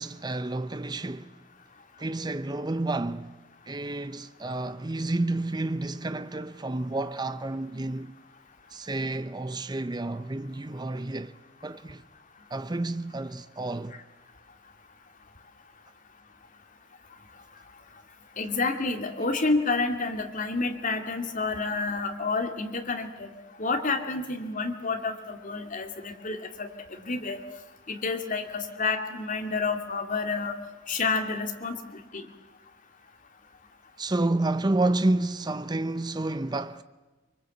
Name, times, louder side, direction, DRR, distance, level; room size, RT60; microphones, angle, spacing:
voice 1, 0.0-1.4 2.0-3.4 3.7-8.1 8.7-11.4 11.6-12.0 12.5-14.0 34.0-36.8, right 2 dB, 20° right, 0.7 m, -30 dB
voice 2, 18.4-23.3 23.6-27.4 27.9-30.6 30.9-32.3, left 3 dB, 40° left, 2.4 m, -29 dB
24.0 x 24.0 x 7.9 m
head